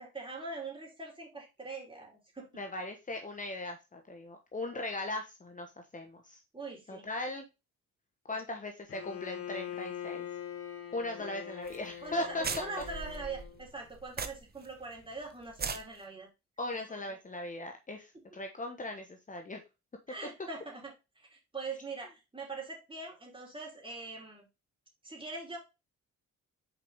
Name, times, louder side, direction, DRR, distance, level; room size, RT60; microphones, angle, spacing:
voice 1, 0.0-2.5 6.5-7.1 8.3-8.4 11.2-11.5 12.0-16.3 20.1-24.5 25.0-25.6, right 3 dB, 15° right, -1 dB, 3.5 m, -43 dB
voice 2, 2.5-6.4 6.9-7.4 8.3-10.3 10.9-12.5 16.6-19.6, left 2 dB, 25° left, 4 dB, 1.2 m, -38 dB
Bowed string instrument, 8.9-13.6, left 9 dB, 50° left, 1.3 m, -42 dB
sound 1, 11.7-11.8 12.1-12.2 12.4-14.7 15.0-15.1 15.5-15.8, right 5 dB, 30° right, 0.9 m, -38 dB
6.1 x 4.8 x 3.5 m, 0.26 s
cardioid pair, 90°, 30 cm